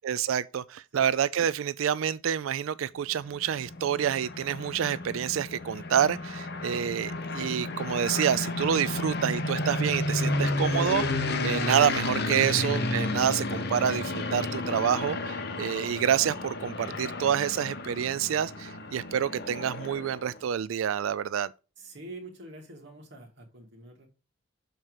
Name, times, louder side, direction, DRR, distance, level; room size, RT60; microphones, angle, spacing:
voice 1, 0.0-21.5, right 9 dB, 80° right, 0.4 m, -28 dB
sound 1, 3.2-20.4, left 2 dB, 55° left, 1.1 m, -32 dB
voice 2, 21.8-24.1, right 2 dB, 60° right, 2.4 m, -45 dB
6.7 x 4.4 x 6.3 m
head